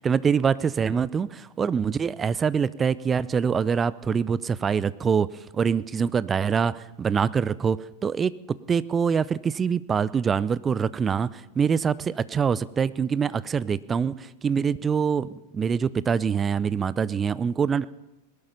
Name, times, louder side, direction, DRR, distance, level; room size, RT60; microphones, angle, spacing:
voice 1, 0.0-5.3 5.5-17.8, right 6 dB, 20° right, 19 dB, 0.5 m, -25 dB
20.0 x 11.5 x 5.5 m, 1.0 s
figure-of-eight pair, 90°, 0 cm